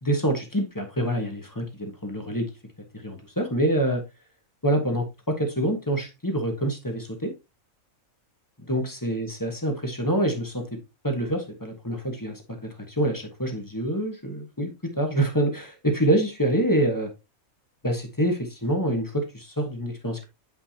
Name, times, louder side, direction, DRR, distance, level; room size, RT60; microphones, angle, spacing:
voice 1, 0.0-2.5 3.0-4.0 4.6-7.3 8.6-10.8 11.0-17.1 17.8-20.3, right 1 dB, 15° left, 1.3 m, -26 dB
8.0 x 5.5 x 2.9 m
omnidirectional pair, 1.5 m